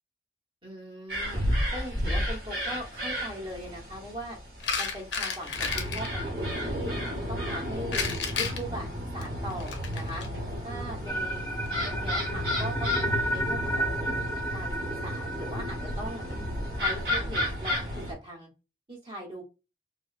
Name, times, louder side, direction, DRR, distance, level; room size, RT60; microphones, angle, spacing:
voice 1, 0.6-1.4 1.7-4.4 4.8-6.9 7.3-8.0 8.3-8.9 9.1-10.2 10.6-11.4 11.8-14.1 14.5-16.2 16.7-18.5 18.9-19.4, equal, 25° right, -2 dB, 1.4 m, -40 dB
sound 1, 1.1-18.1, equal, 55° right, 1.5 m, -32 dB
sound 2, 4.6-6.1 7.9-10.3 11.4-11.7, left 5 dB, 85° left, 0.7 m, -32 dB
sound 3, 11.1-17.2, right 1 dB, 15° left, 0.4 m, -33 dB
4.7 x 2.2 x 2.5 m, 0.30 s
head